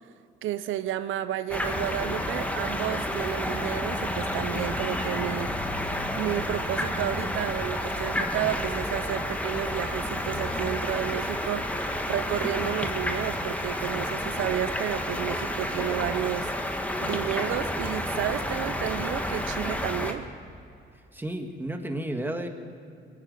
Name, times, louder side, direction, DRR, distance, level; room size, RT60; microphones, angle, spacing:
voice 1, 0.4-5.5 6.2-16.5 17.0-20.3, right 12 dB, 80° right, 12 dB, 0.6 m, -31 dB
sound 1, 1.5-20.1, left 1 dB, 5° left, 1.5 m, -30 dB
voice 2, 21.1-22.5, right 1 dB, 10° right, 5 dB, 1.7 m, -32 dB
19.5 x 9.4 x 7.8 m, 2.5 s
cardioid pair, 90°, 20 cm